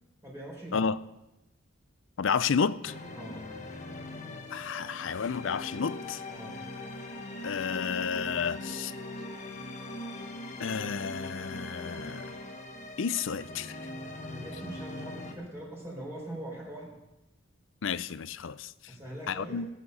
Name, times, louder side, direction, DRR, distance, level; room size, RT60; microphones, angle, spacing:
voice 1, 0.2-0.8 3.1-3.5 6.3-6.6 14.3-17.0 18.9-19.7, right 1 dB, 15° right, -4 dB, 4.1 m, -42 dB
voice 2, 2.2-2.9 4.5-6.2 7.4-8.9 10.6-12.3 13.0-13.7 17.8-18.7 19.3-19.7, left 6 dB, 65° left, 16 dB, 0.5 m, -31 dB
sound 1, 2.8-15.3, left 1 dB, 35° left, 1.5 m, -41 dB
18.0 x 8.9 x 5.5 m, 0.96 s
head